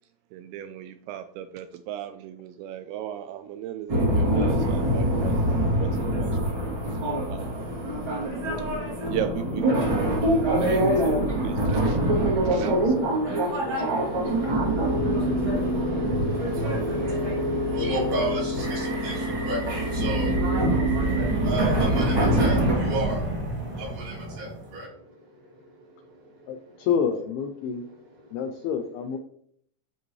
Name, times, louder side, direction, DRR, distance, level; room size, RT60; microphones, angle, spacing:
voice 1, 0.3-5.9 6.2-6.7 7.3-7.7 9.1-9.8 10.6-12.9 13.2-13.6, right 10 dB, 85° right, 9 dB, 2.7 m, -36 dB
sound 1, 3.9-22.7, right 1 dB, 35° right, 2.2 m, -24 dB
voice 2, 13.7-26.7 28.3-28.4, right 1 dB, 60° right, -6 dB, 5.5 m, -34 dB
sound 2, 20.9-24.9, right 1 dB, 5° right, 1.0 m, -30 dB
voice 3, 26.5-27.9 28.3-29.2, left 7 dB, 85° left, 7 dB, 2.2 m, -28 dB
12.5 x 5.2 x 3.1 m, 0.66 s
omnidirectional pair, 5.3 m